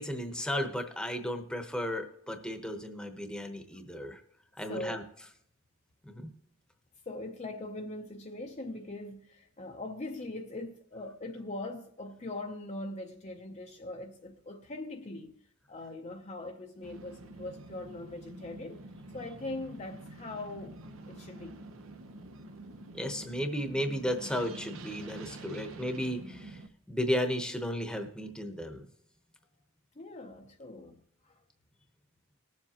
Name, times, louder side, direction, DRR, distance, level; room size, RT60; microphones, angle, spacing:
voice 1, 0.0-4.2 4.6-5.0 6.0-6.3 22.9-26.6 26.9-28.9, equal, 5° left, 0.9 m, -34 dB
voice 2, 4.7-5.0 7.1-18.8 19.1-20.8 21.1-21.6 30.0-31.4, left 2 dB, 35° left, 0.6 m, -41 dB
sound 1, 16.8-26.7, right 2 dB, 80° right, 0.8 m, -47 dB
20.0 x 7.3 x 2.9 m
head